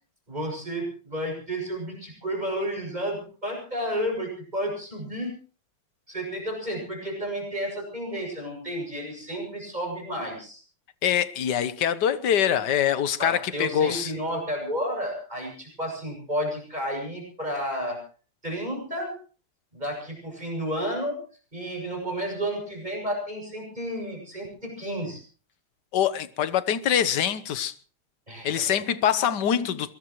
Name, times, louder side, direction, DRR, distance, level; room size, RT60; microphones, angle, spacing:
voice 1, 0.3-5.3 6.1-10.6 13.2-18.0 18.4-19.1 19.7-21.2 21.5-25.2 28.3-28.7, equal, 20° right, 7.5 m, -31 dB
voice 2, 11.0-14.1 25.9-27.7 28.4-29.9, left 9 dB, 60° left, 1.5 m, -24 dB
22.5 x 20.5 x 3.1 m
omnidirectional pair, 2.3 m